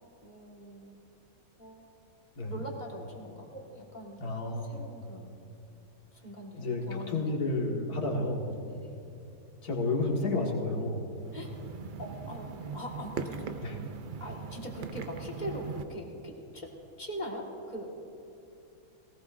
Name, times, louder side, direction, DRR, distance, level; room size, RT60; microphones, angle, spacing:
voice 1, 0.2-0.9 1.6-1.8 2.5-4.2 4.6-5.3 6.1-7.3 8.7-9.0 11.3-11.5 12.0-13.4 14.2-17.9, equal, 30° left, -1 dB, 1.8 m, -42 dB
voice 2, 4.2-4.8 6.6-8.5 9.6-11.1 13.6-13.7, left 2 dB, 85° left, -2 dB, 2.3 m, -31 dB
sound 1, 11.2-15.8, right 5 dB, 55° right, 0.5 m, -40 dB
18.5 x 18.0 x 2.6 m, 2.7 s
omnidirectional pair, 1.6 m